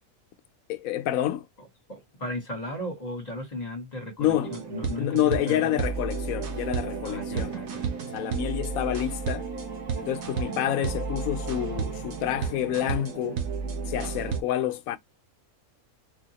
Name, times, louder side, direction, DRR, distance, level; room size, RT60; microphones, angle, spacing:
voice 1, 0.7-1.5 4.2-4.5 4.8-7.6 8.1-9.5 10.0-13.4 13.9-15.0, left 12 dB, 80° left, 1.0 m, -28 dB
voice 2, 1.9-5.6 7.0-7.9 10.4-10.6, left 1 dB, 30° left, 1.6 m, -36 dB
sound 1, 4.3-14.4, right 5 dB, 70° right, 1.3 m, -32 dB
4.1 x 2.7 x 2.9 m
omnidirectional pair, 1.5 m